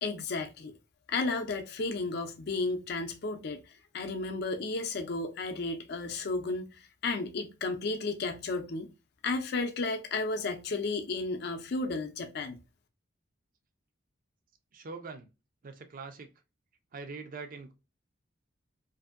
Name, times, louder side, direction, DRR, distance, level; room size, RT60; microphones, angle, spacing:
voice 1, 0.0-0.8 1.1-3.6 3.9-6.7 7.0-8.9 9.2-12.6, left 3 dB, 55° left, 0.4 m, -33 dB
voice 2, 14.7-15.3 15.6-16.3 16.9-17.7, right 4 dB, 45° right, 0.4 m, -43 dB
2.6 x 2.5 x 2.4 m
head